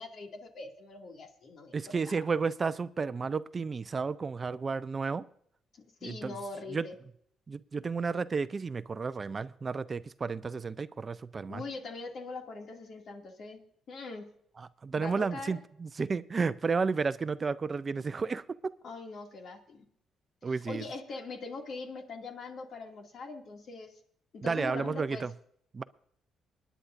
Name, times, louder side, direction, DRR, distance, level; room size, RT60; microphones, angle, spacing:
voice 1, 0.0-2.1 5.7-6.9 11.5-13.6 13.9-14.3 15.0-15.6 18.8-19.8 20.5-24.0 24.3-25.2, left 3 dB, 60° left, 2.3 m, -42 dB
voice 2, 1.7-5.3 6.0-6.4 6.7-6.9 7.5-11.6 14.6-18.7 20.4-20.8 24.4-25.3 25.7-25.8, right 4 dB, 35° right, 0.5 m, -32 dB
25.0 x 10.0 x 2.6 m
cardioid pair, 90°, 0 cm